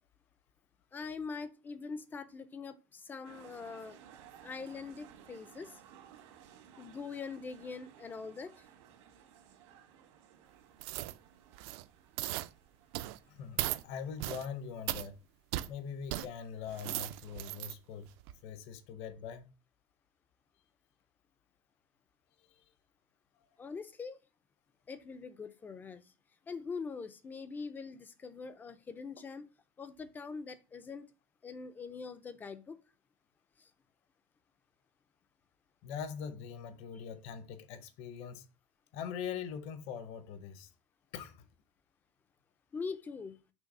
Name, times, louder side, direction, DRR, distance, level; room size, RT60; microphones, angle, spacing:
voice 1, 0.9-4.0 4.4-5.8 6.8-8.7 23.6-24.2 24.9-26.1 26.5-29.5 29.8-31.1 31.4-32.8 33.6-33.7 42.7-43.4, left 5 dB, 10° left, 0.4 m, -43 dB
sound 1, 3.2-15.0, right 9 dB, 85° right, 1.8 m, -58 dB
sound 2, 10.8-11.2 11.5-11.8 12.2-12.5 12.9-13.2 13.6-13.8 14.2-14.5 14.9-15.1 15.5-15.7 16.1-16.3 16.7-17.7 18.2-18.3, right 16 dB, 60° right, 0.4 m, -37 dB
voice 2, 13.3-15.2 15.7-18.1 18.4-19.5 22.4-22.6 35.8-38.4 38.9-40.7 41.1-41.5, left 7 dB, 45° left, 0.7 m, -42 dB
6.2 x 3.3 x 5.3 m
cardioid pair, 175°, 15 cm